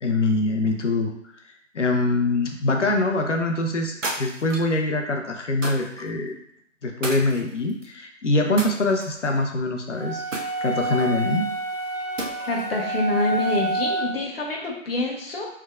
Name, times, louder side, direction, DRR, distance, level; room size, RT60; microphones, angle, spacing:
voice 1, 0.0-1.1 1.7-6.4 6.8-10.2 10.6-11.5, left 2 dB, 65° left, 3 dB, 0.7 m, -24 dB
sound 1, 4.0-4.8 5.6-6.1 7.0-7.9 8.6-9.3 10.3-11.2 12.2-12.7, right 1 dB, 70° right, 0.9 m, -33 dB
sound 2, 10.0-14.2, right 2 dB, 35° right, 0.5 m, -28 dB
voice 2, 12.5-15.5, left 2 dB, 50° left, -1 dB, 1.1 m, -26 dB
4.5 x 3.5 x 2.4 m, 0.75 s
figure-of-eight pair, 140°, 39 cm